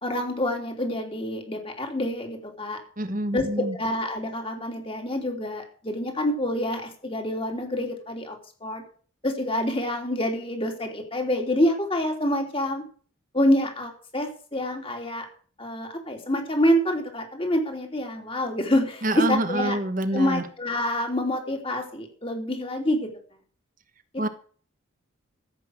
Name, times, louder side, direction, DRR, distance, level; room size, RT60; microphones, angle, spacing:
voice 1, 0.0-2.8 3.3-8.8 9.2-12.8 13.3-15.3 15.6-19.8 20.1-23.1 24.1-24.3, left 1 dB, 25° left, 3 dB, 3.0 m, -27 dB
voice 2, 3.0-3.7 19.0-20.4 24.2-24.3, right 1 dB, 40° right, 10 dB, 1.4 m, -26 dB
14.5 x 8.1 x 6.4 m, 0.43 s
head